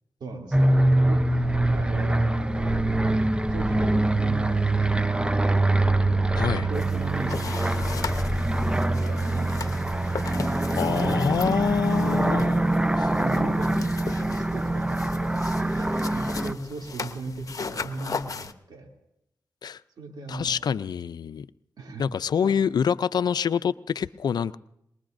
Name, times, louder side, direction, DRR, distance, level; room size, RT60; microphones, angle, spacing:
voice 1, 0.2-2.8 3.5-5.7 6.7-8.1 8.8-10.1 13.2-13.8 14.2-18.9 20.0-20.6 21.8-22.1 22.4-22.6, right 3 dB, 75° right, 2 dB, 2.8 m, -38 dB
sound 1, 0.5-16.5, right 2 dB, 15° right, 0.7 m, -24 dB
sound 2, 1.4-9.7 11.6-12.7 13.0-14.2, equal, 50° right, 4.9 m, -37 dB
voice 2, 6.4-6.7 10.8-12.6 13.0-13.1 19.6-19.8 20.3-21.5 22.0-24.6, left 7 dB, 70° left, 16 dB, 0.5 m, -26 dB
sound 3, 6.7-18.5, left 4 dB, 50° left, 0.9 m, -37 dB
22.5 x 21.0 x 2.6 m, 0.84 s
supercardioid pair, 45°, 7 cm